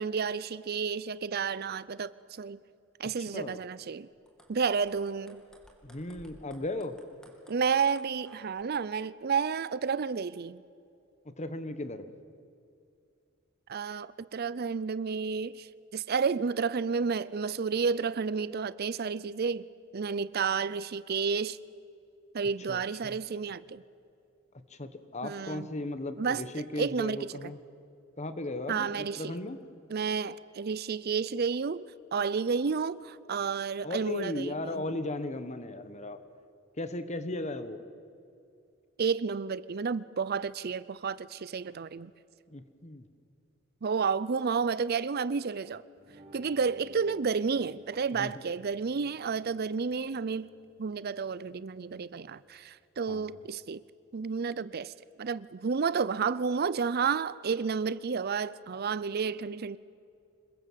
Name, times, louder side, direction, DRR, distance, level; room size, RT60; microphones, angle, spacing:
voice 1, 0.0-2.1 2.4-2.6 3.0-4.1 4.5-5.4 7.5-10.6 13.7-19.7 19.9-21.6 22.3-23.8 25.2-25.7 26.2-26.4 26.8-27.3 28.7-29.4 29.9-34.8 39.0-42.1 43.8-45.8 46.3-50.5 50.8-53.8 54.1-54.9 55.2-59.8, right 5 dB, 50° right, 0.5 m, -31 dB
voice 2, 3.2-3.6 5.8-7.0 11.2-12.1 22.7-23.2 24.7-27.6 28.2-29.6 33.8-36.2 36.8-37.8 42.5-43.1 48.1-48.4 53.1-53.3, left 2 dB, 35° left, 1.3 m, -36 dB
sound 1, 4.1-8.6, equal, 5° left, 2.7 m, -58 dB
sound 2, 46.0-53.7, equal, 30° right, 4.1 m, -57 dB
26.5 x 22.0 x 7.5 m
head